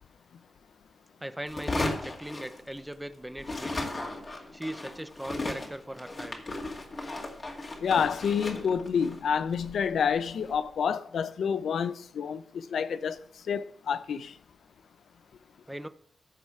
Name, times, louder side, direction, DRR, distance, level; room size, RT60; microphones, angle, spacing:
voice 1, 1.2-3.7 4.5-6.4 15.7-15.9, right 1 dB, 5° right, 0.7 m, -39 dB
sound 1, 1.5-3.1 3.4-10.6, left 2 dB, 40° left, 2.2 m, -36 dB
voice 2, 7.8-12.4 12.7-13.2 13.5-14.3, left 7 dB, 85° left, 0.5 m, -28 dB
15.0 x 5.5 x 4.7 m
cardioid pair, 90°, 0 cm